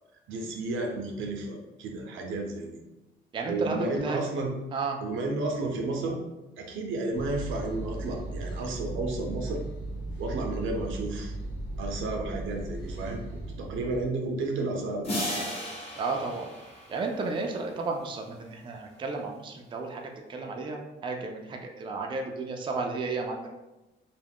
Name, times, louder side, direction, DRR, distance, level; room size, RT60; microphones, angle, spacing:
voice 1, 0.3-2.8 3.5-4.5 5.0-6.2 6.6-9.6 10.2-11.3 11.8-13.2 13.6-15.5, right 2 dB, 80° right, 2 dB, 0.6 m, -32 dB
voice 2, 3.3-4.2 4.7-5.0 16.0-16.5 16.9-20.0 20.3-23.5, right 3 dB, 25° right, 2 dB, 0.4 m, -33 dB
sound 1, 7.1-14.0, right 2 dB, 75° left, 1.1 m, -36 dB
sound 2, 15.0-17.8, left 1 dB, 30° left, 0.8 m, -35 dB
2.3 x 2.0 x 3.4 m, 1.0 s
cardioid pair, 90°, 20 cm